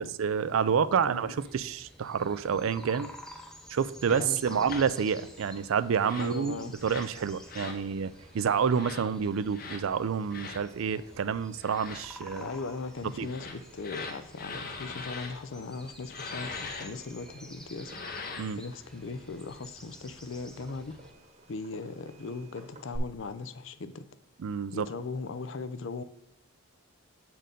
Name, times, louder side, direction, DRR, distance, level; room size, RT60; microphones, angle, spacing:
voice 1, 0.2-3.1 3.7-6.6 6.8-12.5 13.2-13.3 18.4-18.6 24.4-24.9, right 6 dB, 75° right, 0.4 m, -28 dB
voice 2, 0.9-1.4 4.1-4.7 6.2-6.8 12.3-18.0 18.6-20.9 21.5-24.0 24.7-26.0, left 4 dB, 65° left, 0.5 m, -39 dB
sound 1, 1.4-21.1, left 1 dB, 5° left, 0.5 m, -51 dB
Fireworks, 4.0-23.0, right 1 dB, 35° right, 1.0 m, -54 dB
sound 2, 4.1-4.2 4.7-4.9 5.9-6.4 6.8-7.1 7.5-7.8 8.7-9.0 9.5-9.8 10.3-10.6 11.6-12.1 13.2-15.3 16.1-16.9 17.8-18.6, left 4 dB, 45° left, 0.8 m, -40 dB
7.5 x 4.4 x 5.1 m
head